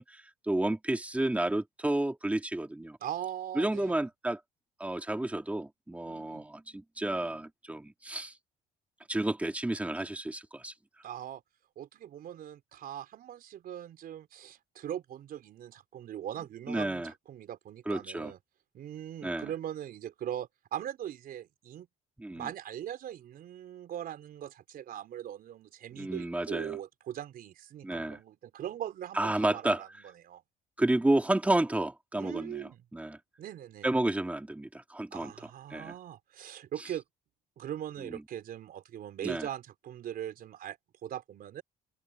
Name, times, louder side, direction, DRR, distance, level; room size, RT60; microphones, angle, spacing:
voice 1, 0.0-3.0 3.6-4.4 4.8-8.3 9.1-10.7 16.7-17.1 17.9-18.3 19.2-19.5 22.2-22.5 26.0-26.8 27.8-28.2 29.1-29.8 30.8-33.2 33.8-35.9 38.1-38.2 39.2-39.5, right 1 dB, 10° right, 2.9 m, -31 dB
voice 2, 3.0-4.0 6.1-6.4 11.0-11.4 11.8-18.4 18.7-21.9 22.3-30.4 32.2-32.8 33.4-33.9 35.1-37.0 37.6-41.6, right 11 dB, 60° right, 4.5 m, -40 dB
cardioid pair, 110°, 17 cm